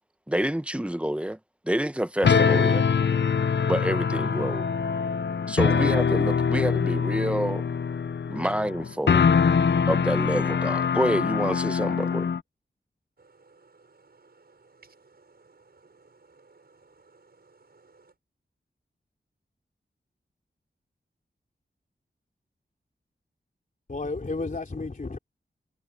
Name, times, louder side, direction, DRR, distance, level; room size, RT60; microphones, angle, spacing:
voice 1, 0.3-1.4 1.6-2.8 3.7-4.7 5.5-7.6 8.3-9.3 9.9-12.3, right 1 dB, 5° right, 1.2 m, -27 dB
sound 1, 2.2-12.4, left 6 dB, 70° left, 0.7 m, -23 dB
voice 2, 13.2-18.1, right 4 dB, 60° right, 6.2 m, -57 dB
voice 3, 23.9-25.2, left 3 dB, 45° left, 3.1 m, -32 dB
wide cardioid pair, 85°, 19 cm